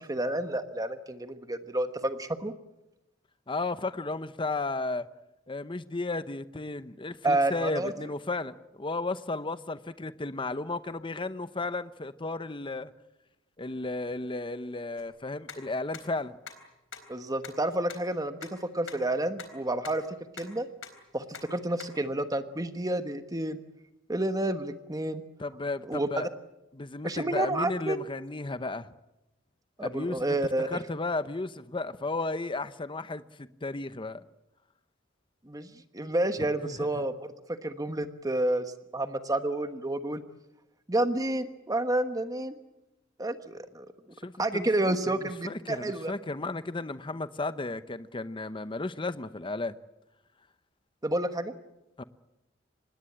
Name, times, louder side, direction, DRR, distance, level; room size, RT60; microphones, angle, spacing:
voice 1, 0.0-2.5 7.2-7.9 17.1-18.5 18.7-20.0 20.4-20.7 21.1-21.2 21.5-23.6 24.1-25.2 25.9-26.1 27.0-28.0 29.8-30.8 35.5-35.7 35.9-37.1 37.6-38.6 38.9-40.2 40.9-42.5 43.2-43.9 44.4-46.1 51.0-51.5, right 1 dB, 20° right, 1.2 m, -29 dB
voice 2, 3.5-5.1 5.5-12.9 13.6-16.4 25.4-26.3 26.7-28.9 29.8-34.2 36.4-37.0 44.2-49.7 52.0-52.1, left 2 dB, 25° left, 0.8 m, -34 dB
sound 1, 15.0-15.1 15.5-15.6 15.9-16.0 16.5-16.6 16.9-17.0 17.4-17.5 17.9-18.0 18.4-18.5 18.9-19.0 19.4-19.5 19.8-19.9 20.4-20.5 20.8-20.9 21.3-21.4 21.8-21.9, left 7 dB, 75° left, 3.9 m, -41 dB
25.5 x 20.5 x 8.7 m
head